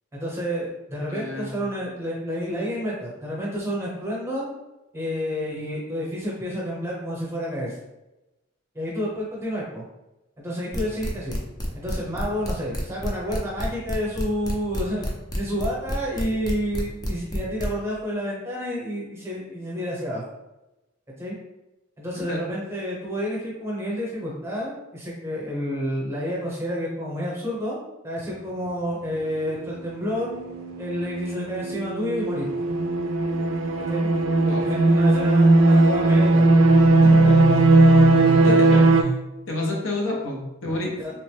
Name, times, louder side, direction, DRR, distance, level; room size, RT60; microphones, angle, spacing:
voice 1, 0.1-4.5 4.9-7.8 8.7-9.8 10.4-11.4 11.7-15.0 15.3-20.2 21.1-21.3 22.0-27.8 28.0-30.3 30.8-32.5 33.8-34.1 34.5-36.5 37.1-37.7 41.0-41.1, equal, 15° right, -5 dB, 0.8 m, -29 dB
voice 2, 1.1-1.6 22.1-22.4 34.4-34.6 38.3-39.2 39.5-41.0, left 2 dB, 80° left, -1 dB, 0.7 m, -30 dB
sound 1, 10.7-17.7, equal, 20° left, 0.5 m, -29 dB
sound 2, 30.3-39.0, right 2 dB, 75° right, 0.3 m, -18 dB
3.0 x 2.1 x 3.1 m, 0.97 s
head